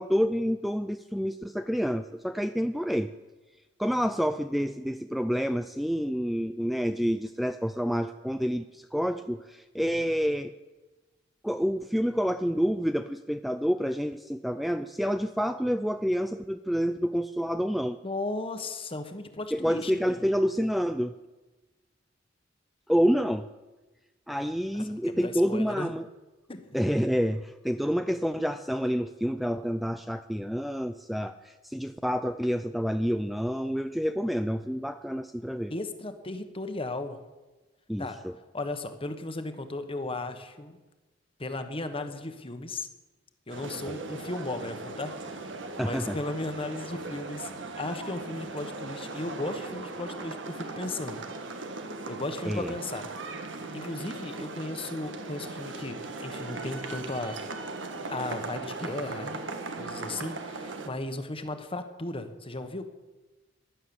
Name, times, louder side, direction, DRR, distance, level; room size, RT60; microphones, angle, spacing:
voice 1, 0.0-3.1 3.8-10.5 11.4-18.0 19.5-21.2 22.9-23.5 24.3-26.1 26.7-35.7 37.9-38.3 45.8-46.2 52.5-52.7, equal, ahead, 9 dB, 0.4 m, -28 dB
voice 2, 18.0-20.2 24.7-25.9 26.5-26.8 35.7-37.2 38.0-38.2 38.5-40.8 41.4-42.9 43.5-45.1 45.8-51.2 52.1-53.1 53.6-57.4 58.1-59.5 59.8-62.8, left 2 dB, 30° left, 8 dB, 1.4 m, -36 dB
sound 1, 43.5-60.9, right 3 dB, 75° right, 1.7 m, -38 dB
16.0 x 11.5 x 7.1 m, 1.2 s
head